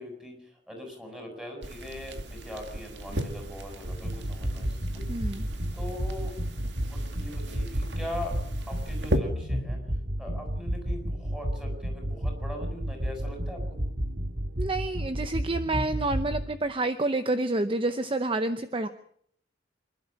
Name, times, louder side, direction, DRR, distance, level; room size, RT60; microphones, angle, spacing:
voice 1, 0.0-5.0 5.7-6.4 6.8-9.8 10.2-13.8, left 1 dB, 5° right, 3 dB, 6.7 m, -41 dB
sound 1, 1.6-9.2, right 1 dB, 70° right, 2.3 m, -36 dB
sound 2, 3.9-16.5, equal, 50° right, 2.0 m, -31 dB
voice 2, 5.1-5.4 14.6-18.9, right 2 dB, 30° right, 10 dB, 0.8 m, -28 dB
26.5 x 12.0 x 8.6 m, 0.66 s
head